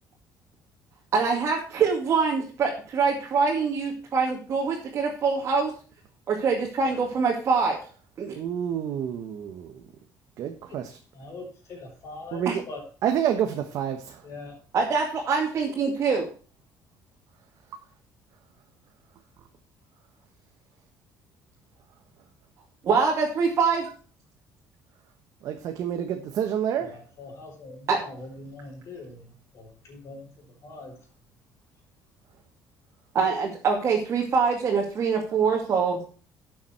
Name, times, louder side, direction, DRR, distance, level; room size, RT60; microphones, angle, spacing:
voice 1, 1.1-5.7 6.3-7.8 8.2-8.3 12.5-12.6 14.7-16.3 22.8-23.9 27.9-28.0 33.1-36.0, right 5 dB, 40° right, -1 dB, 2.4 m, -24 dB
voice 2, 8.4-9.8 10.4-10.8 12.3-12.6 13.0-14.2 25.4-27.0, right 9 dB, 60° right, 5 dB, 1.2 m, -28 dB
voice 3, 11.1-12.8 13.3-13.4 14.2-14.6 26.8-30.3 30.6-30.9, left 2 dB, 45° left, 0 dB, 5.7 m, -42 dB
12.0 x 7.3 x 4.5 m, 0.39 s
cardioid pair, 155°, 7 cm